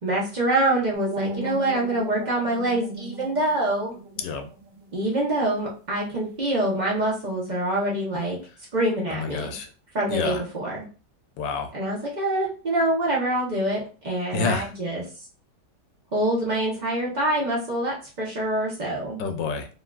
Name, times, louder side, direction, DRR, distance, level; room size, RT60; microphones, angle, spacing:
voice 1, 0.0-4.0 4.9-8.4 8.7-9.5 9.9-10.8 11.7-15.0 16.1-19.2, right 1 dB, 50° right, -4 dB, 0.5 m, -25 dB
sound 1, 0.9-5.9, right 3 dB, 80° right, 1.4 m, -38 dB
voice 2, 4.2-4.5 9.1-9.7 10.1-10.4 11.4-11.7 14.3-14.7 19.2-19.7, left 5 dB, 90° left, 7 dB, 1.2 m, -28 dB
3.6 x 2.3 x 2.2 m, 0.36 s
omnidirectional pair, 1.8 m